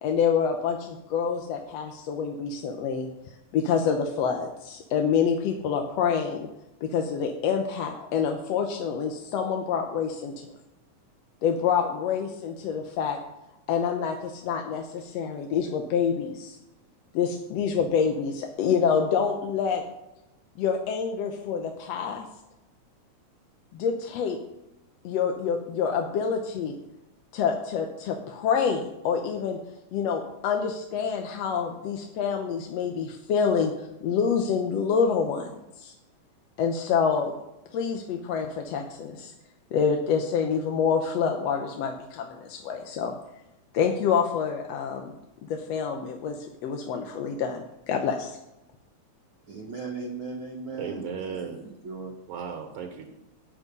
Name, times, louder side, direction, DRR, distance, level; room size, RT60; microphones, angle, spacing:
voice 1, 0.0-3.1 3.5-6.5 6.8-10.3 11.4-13.2 13.7-16.6 17.1-19.8 20.6-22.3 23.7-24.4 25.0-26.8 27.3-29.6 29.9-35.5 35.8-35.9 36.6-37.4 37.7-39.3 39.7-43.1 43.7-45.1 45.5-48.4, left 6 dB, 70° left, 1.9 m, -27 dB
voice 2, 49.5-51.0 51.3-52.1, right 4 dB, 55° right, 1.7 m, -37 dB
voice 3, 50.7-51.7 52.3-53.1, right 6 dB, 75° right, 2.8 m, -35 dB
13.5 x 8.9 x 5.4 m
omnidirectional pair, 3.4 m